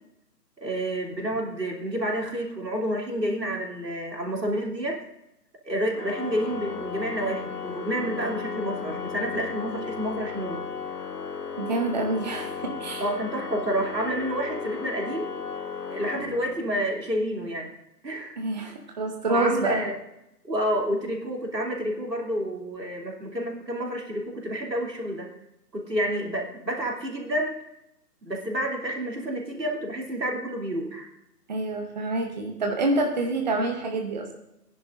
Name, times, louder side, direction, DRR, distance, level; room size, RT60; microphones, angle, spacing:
voice 1, 0.6-5.0 5.6-10.6 13.0-15.3 15.9-17.7 18.0-18.4 19.3-19.9 20.4-25.3 25.7-27.6 28.2-31.1, right 1 dB, 85° right, 0 dB, 3.1 m, -29 dB
Organ, 5.9-16.9, left 6 dB, 65° left, 1.1 m, -35 dB
voice 2, 11.6-13.0 18.4-19.8 31.5-34.3, right 2 dB, 25° right, 3 dB, 0.9 m, -27 dB
19.0 x 10.5 x 2.6 m, 0.86 s
figure-of-eight pair, 145°, 49 cm